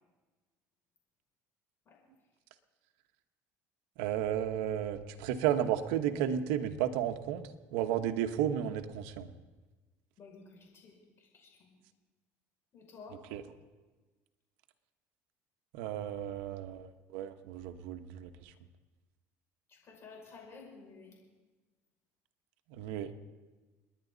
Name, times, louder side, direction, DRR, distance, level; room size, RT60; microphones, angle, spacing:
voice 1, 4.0-9.3 13.3-13.4 15.7-18.3 22.7-23.1, right 10 dB, 85° right, 8 dB, 1.1 m, -33 dB
voice 2, 10.2-11.7 12.7-13.2 19.7-21.1, left 4 dB, 40° left, -2 dB, 6.1 m, -53 dB
30.0 x 10.5 x 4.0 m, 1.3 s
supercardioid pair, 110°, 6 cm